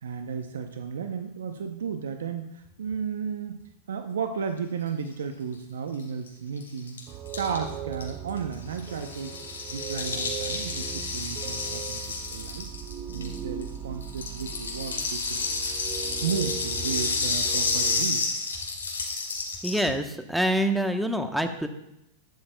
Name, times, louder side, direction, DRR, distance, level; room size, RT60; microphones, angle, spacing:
voice 1, 0.0-3.6 3.9-7.0 7.3-9.4 9.7-12.7 13.1-15.4 15.8-18.3, right 6 dB, 80° right, 7 dB, 0.7 m, -33 dB
Rattle (instrument), 6.0-6.1 6.3-6.4 6.6-13.7 14.0-19.9, left 4 dB, 85° left, 2.7 m, -30 dB
sound 1, 7.1-18.0, right 8 dB, 35° right, 0.7 m, -39 dB
voice 2, 19.6-21.7, equal, ahead, 7 dB, 1.0 m, -26 dB
13.0 x 12.0 x 2.3 m, 0.84 s
hypercardioid pair, 100°, 0 cm